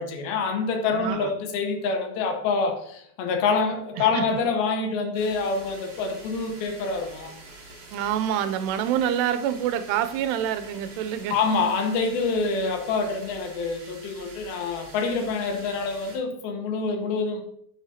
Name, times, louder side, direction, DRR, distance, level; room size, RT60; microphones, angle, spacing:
voice 1, 0.0-7.4 11.3-17.4, left 4 dB, 75° left, 4 dB, 2.7 m, -26 dB
voice 2, 0.9-1.3 4.0-4.2 7.9-11.4, right 10 dB, 90° right, 10 dB, 2.7 m, -26 dB
sound 1, 5.1-16.2, right 2 dB, 45° right, 2.3 m, -46 dB
9.8 x 6.5 x 2.7 m, 0.70 s
omnidirectional pair, 4.7 m